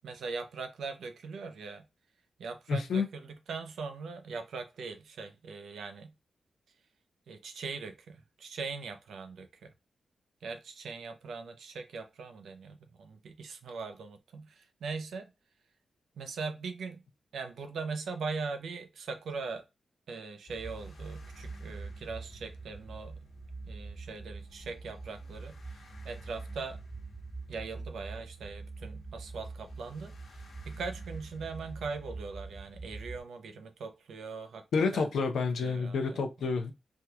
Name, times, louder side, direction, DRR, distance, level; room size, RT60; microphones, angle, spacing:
voice 1, 0.0-1.9 2.4-6.1 7.3-9.7 10.4-15.3 16.2-17.0 17.3-19.6 20.1-23.2 23.7-26.8 27.5-34.6 34.9-35.1 35.6-36.2, right 4 dB, 90° right, 0.6 m, -41 dB
voice 2, 2.7-3.1 34.7-36.7, left 4 dB, 85° left, 0.7 m, -29 dB
sound 1, 20.5-33.2, right 3 dB, 60° left, 1.0 m, -44 dB
3.5 x 2.9 x 2.3 m
wide cardioid pair, 145°, 0 cm